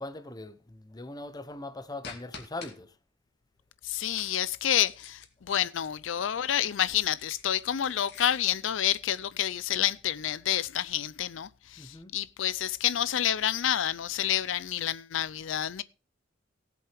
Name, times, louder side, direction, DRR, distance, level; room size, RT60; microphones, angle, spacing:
voice 1, 0.0-3.0 11.8-12.1, left 2 dB, 20° left, 0.9 m, -41 dB
sound 1, 2.0-2.7 4.1-6.0 7.1-8.5, left 5 dB, 60° left, 2.5 m, -47 dB
voice 2, 3.8-15.8, left 11 dB, 80° left, 0.5 m, -29 dB
18.0 x 7.7 x 3.5 m
head